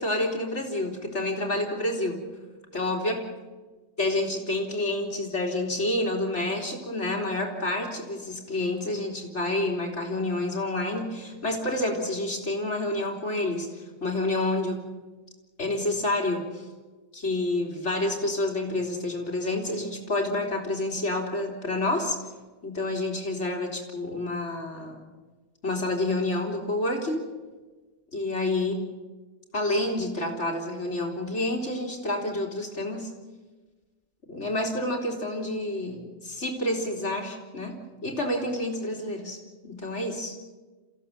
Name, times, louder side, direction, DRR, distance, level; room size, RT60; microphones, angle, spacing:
voice 1, 0.0-2.2 2.7-3.2 4.0-14.8 15.6-16.7 17.1-22.2 22.6-25.1 25.6-27.2 28.1-28.8 29.5-33.1 34.3-39.4 39.6-40.4, left 1 dB, 75° left, 1 dB, 3.7 m, -29 dB
28.5 x 15.5 x 7.4 m, 1.3 s
omnidirectional pair, 1.2 m